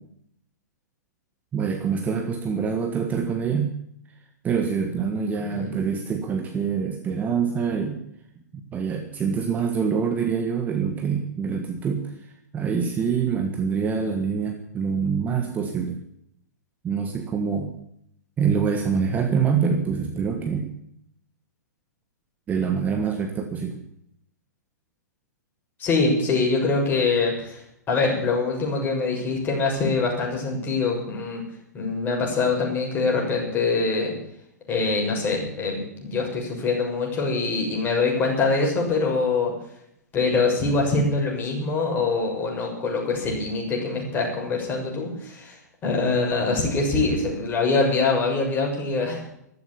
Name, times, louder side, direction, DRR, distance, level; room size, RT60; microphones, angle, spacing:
voice 1, 1.5-3.7 4.4-8.0 8.5-16.0 16.8-17.7 18.4-20.7 22.5-23.8, right 6 dB, 15° right, 5 dB, 1.6 m, -25 dB
voice 2, 25.8-27.6 27.9-31.4 31.7-34.1 34.7-39.5 40.1-45.6 45.8-49.2, left 3 dB, 20° left, -1 dB, 6.7 m, -24 dB
14.5 x 14.0 x 7.2 m, 0.75 s
figure-of-eight pair, 110°, 10 cm